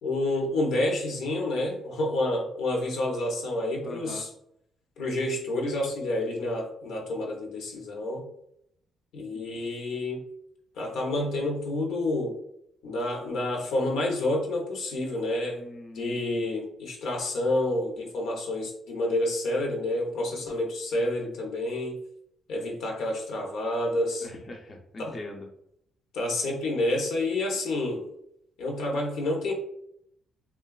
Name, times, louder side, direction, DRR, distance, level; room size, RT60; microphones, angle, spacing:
voice 1, 0.0-4.3 5.0-8.2 9.1-10.2 10.8-12.4 12.8-15.6 15.9-22.0 22.5-24.3 25.0-25.2 26.1-28.0 28.6-29.5, left 1 dB, 80° left, 0 dB, 0.6 m, -29 dB
voice 2, 3.8-4.2 9.3-9.4 15.5-16.4 24.2-25.5, left 2 dB, 35° left, 1 dB, 0.4 m, -42 dB
2.8 x 2.2 x 2.3 m, 0.74 s
cardioid pair, 90°, 0 cm